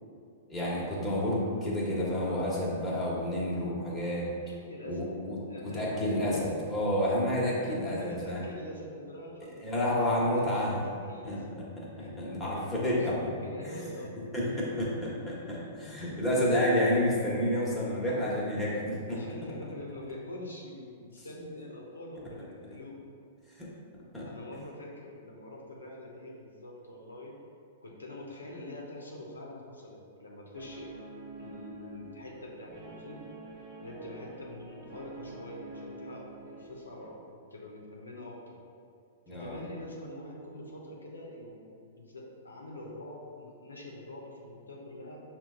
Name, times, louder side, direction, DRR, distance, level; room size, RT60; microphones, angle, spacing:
voice 1, 0.5-4.3 4.9-8.4 9.6-10.8 11.2-11.4 11.8-13.3 13.6-13.8 14.3-19.2 23.6-23.7 24.1-24.3 39.3-39.6, left 1 dB, 5° left, -7 dB, 1.2 m, -30 dB
voice 2, 4.5-6.4 7.5-11.6 12.0-12.1 12.9-14.6 18.7-18.8 19.1-23.0 24.2-27.3 27.8-30.9 31.4-33.2 33.8-38.6 39.3-45.2, left 1 dB, 85° left, -3 dB, 0.7 m, -45 dB
Guitar, 30.5-37.1, right 3 dB, 20° right, 1.0 m, -47 dB
5.5 x 2.2 x 3.7 m, 2.3 s
figure-of-eight pair, 105°, 0 cm